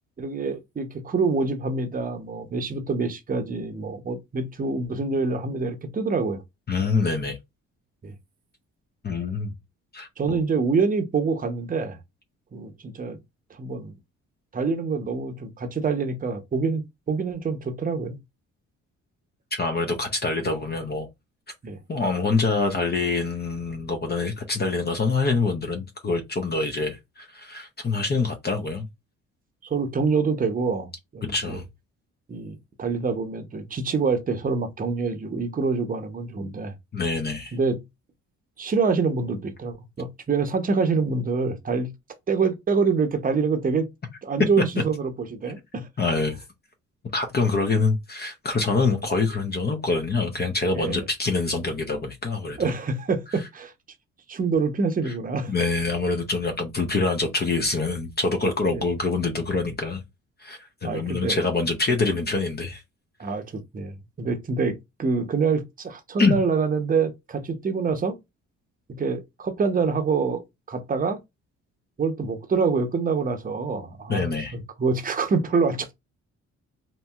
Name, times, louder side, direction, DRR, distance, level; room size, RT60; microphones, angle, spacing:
voice 1, 0.2-6.4 8.0-8.1 10.2-12.0 12.5-13.2 13.6-13.9 14.5-16.8 17.1-18.2 21.6-21.8 29.6-31.6 32.3-36.7 37.5-37.8 38.6-41.9 42.3-43.9 44.2-45.9 50.7-51.0 52.6-53.7 54.3-55.5 58.7-58.8 60.8-61.4 63.2-68.2 68.9-70.4 70.7-71.2 72.0-75.9, right 4 dB, 30° right, 0.7 m, -26 dB
voice 2, 6.7-7.4 9.0-9.6 9.9-10.4 19.5-21.1 21.9-28.9 31.2-31.6 36.9-37.6 46.0-46.4 47.1-52.7 53.3-53.5 55.0-55.1 55.5-60.0 60.4-62.8 66.2-66.4 74.1-74.6, left 3 dB, 35° left, 0.6 m, -25 dB
2.8 x 2.7 x 2.3 m
cardioid pair, 90°, 30 cm